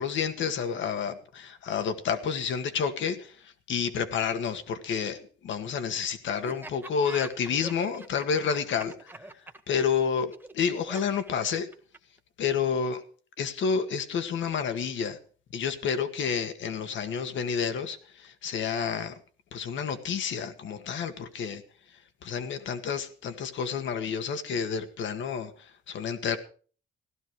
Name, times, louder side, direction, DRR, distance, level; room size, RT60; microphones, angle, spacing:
voice 1, 0.0-9.1 9.7-11.7 12.4-13.0 13.4-15.2 15.5-19.2 19.5-21.6 22.2-26.4, left 6 dB, 70° left, 1.9 m, -30 dB
Laughter, 6.4-12.2, right 2 dB, 10° right, 1.6 m, -44 dB
16.5 x 12.0 x 4.8 m
cardioid pair, 90°, 20 cm